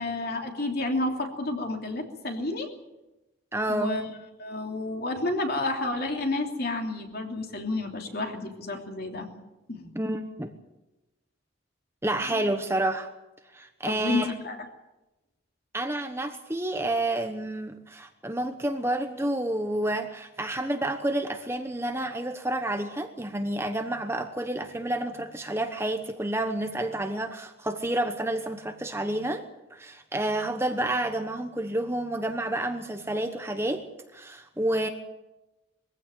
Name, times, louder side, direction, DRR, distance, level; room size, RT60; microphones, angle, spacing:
voice 1, 0.0-2.7 3.7-4.1 4.4-9.3 9.7-9.9 12.3-12.4 13.8-14.6, left 2 dB, 50° left, 3 dB, 3.0 m, -30 dB
voice 2, 3.5-4.0 9.9-10.5 12.0-13.1 13.5-14.3 15.7-29.4 29.7-33.8 34.1-34.9, right 1 dB, 10° right, 6 dB, 1.1 m, -29 dB
22.0 x 15.5 x 8.9 m, 1.0 s
head